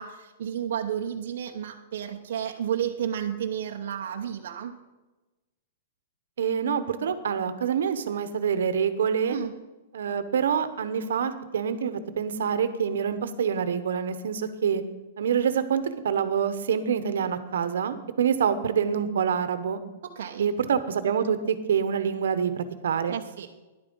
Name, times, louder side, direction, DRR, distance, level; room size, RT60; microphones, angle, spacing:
voice 1, 0.0-4.7 9.3-9.5 20.0-20.5 23.1-23.5, right 9 dB, 55° right, 2 dB, 0.8 m, -32 dB
voice 2, 6.4-9.4 9.9-14.8 15.2-19.8 20.4-23.1, right 7 dB, 75° right, 11 dB, 1.0 m, -26 dB
10.5 x 8.7 x 5.5 m, 1.1 s
hypercardioid pair, 175°, 0 cm